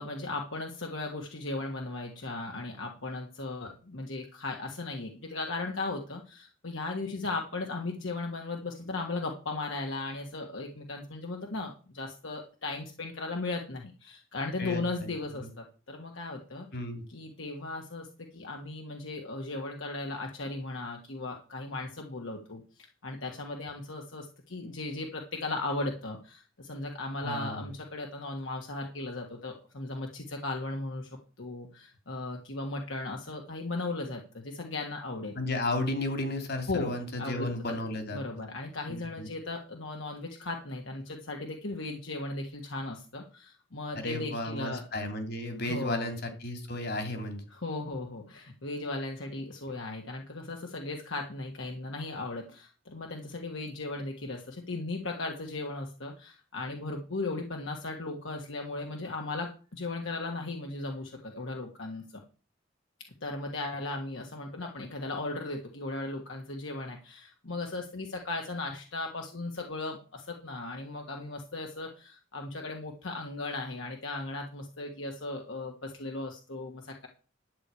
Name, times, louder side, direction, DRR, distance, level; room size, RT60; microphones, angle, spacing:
voice 1, 0.0-16.7 17.1-35.4 36.7-37.6 38.1-44.8 45.7-46.1 47.5-62.2 63.2-77.1, left 2 dB, 70° left, 2 dB, 1.5 m, -37 dB
voice 2, 14.6-15.1 15.4-15.5 16.7-17.0 27.2-27.7 35.4-38.2 38.9-39.3 43.9-47.4, left 1 dB, 55° left, 6 dB, 2.5 m, -33 dB
11.5 x 4.8 x 8.2 m, 0.36 s
head